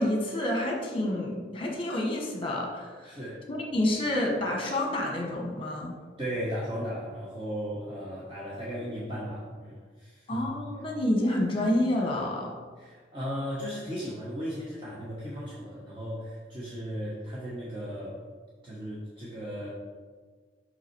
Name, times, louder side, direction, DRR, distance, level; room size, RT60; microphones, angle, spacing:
voice 1, 0.0-3.2 3.5-6.0 10.3-12.6, left 1 dB, 30° left, 1 dB, 1.2 m, -28 dB
voice 2, 3.0-3.4 6.2-10.6 12.8-18.2 18.6-19.7, equal, 25° right, -7 dB, 1.1 m, -36 dB
5.7 x 5.6 x 4.6 m, 1.5 s
head